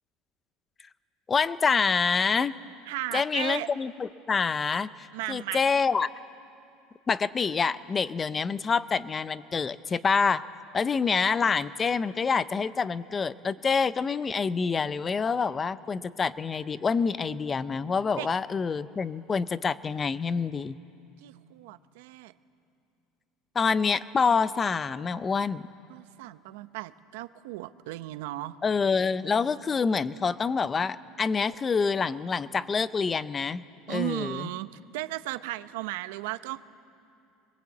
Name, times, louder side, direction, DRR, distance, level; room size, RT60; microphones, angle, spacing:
voice 1, 1.3-2.5 3.1-6.1 7.1-10.4 10.7-20.8 23.5-25.7 28.6-34.5, left 5 dB, 20° left, 16 dB, 0.5 m, -27 dB
voice 2, 2.9-3.7 5.1-5.6 18.1-18.3 21.2-22.3 25.9-28.6 33.9-36.6, right 17 dB, 90° right, 12 dB, 0.8 m, -35 dB
24.0 x 22.0 x 8.4 m, 2.7 s
cardioid pair, 155°, 0 cm